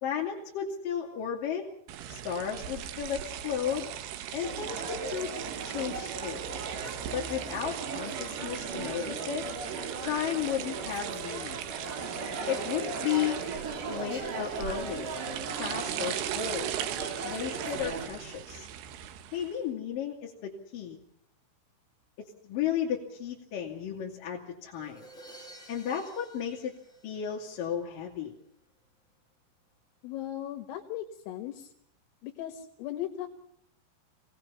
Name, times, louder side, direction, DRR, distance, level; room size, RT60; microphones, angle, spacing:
voice 1, 0.0-1.7 2.1-3.9 4.3-5.3 5.6-6.4 7.1-9.5 10.0-11.6 12.5-13.4 13.9-15.1 15.6-16.7 17.2-18.7 19.3-21.0 22.2-25.0 25.7-26.7 27.0-28.3, left 9 dB, 50° left, -3 dB, 3.6 m, -34 dB
sound 1, 1.9-19.6, right 11 dB, 75° right, 2.5 m, -39 dB
sound 2, 4.4-18.1, right 4 dB, 60° right, 5.9 m, -38 dB
Crash cymbal, 24.8-27.7, right 1 dB, ahead, 6.1 m, -52 dB
voice 2, 30.0-31.7 32.2-33.3, left 12 dB, 80° left, 5 dB, 4.1 m, -37 dB
28.0 x 19.0 x 5.8 m, 0.72 s
omnidirectional pair, 6.0 m